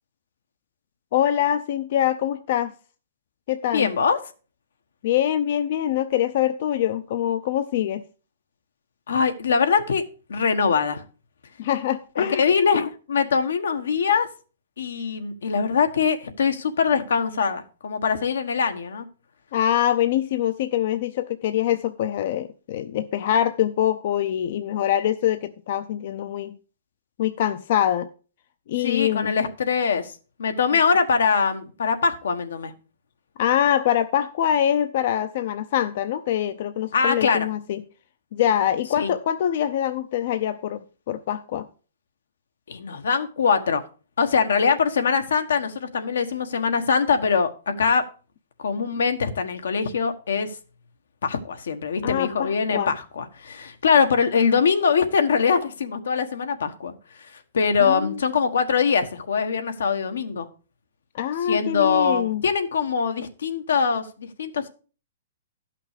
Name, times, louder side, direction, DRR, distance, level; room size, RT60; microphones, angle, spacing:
voice 1, 1.1-2.7 3.5-3.9 5.0-8.0 11.6-12.4 19.5-26.6 27.2-28.1 28.7-29.4 33.4-37.8 38.3-41.7 52.0-52.9 57.8-58.2 61.1-62.4, left 10 dB, 45° left, 0.5 m, -24 dB
voice 2, 3.7-4.2 9.1-10.0 10.3-11.0 12.2-14.3 14.8-19.1 28.8-30.1 30.4-32.7 36.9-37.5 39.0-39.1 42.7-43.8 44.2-48.0 48.6-50.5 51.2-56.9 57.5-60.5 61.5-64.7, left 5 dB, 85° left, 1.3 m, -22 dB
11.5 x 5.9 x 5.0 m
hypercardioid pair, 165°, 0 cm